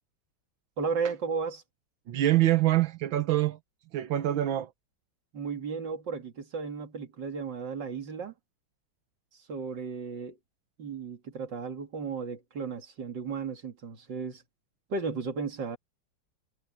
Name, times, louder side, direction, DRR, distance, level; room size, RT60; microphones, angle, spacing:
voice 1, 0.8-1.6 5.3-8.3 9.5-10.4 10.8-14.4 14.9-15.8, right 5 dB, 65° right, 3.0 m, -34 dB
voice 2, 2.1-3.6 3.9-4.7, right 14 dB, 85° right, 1.8 m, -25 dB
omnidirectional pair, 2.1 m